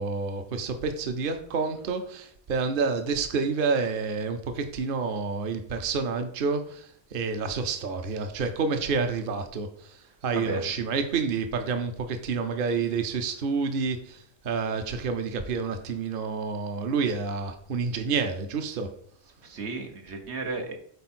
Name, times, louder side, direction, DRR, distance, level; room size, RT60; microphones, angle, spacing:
voice 1, 0.0-6.9 7.1-9.7 10.2-14.2 14.4-18.9, right 4 dB, 55° right, 7 dB, 0.9 m, -29 dB
voice 2, 10.3-10.7 19.4-20.7, right 3 dB, 85° right, 4 dB, 1.4 m, -33 dB
8.2 x 4.5 x 4.3 m, 0.62 s
omnidirectional pair, 1.1 m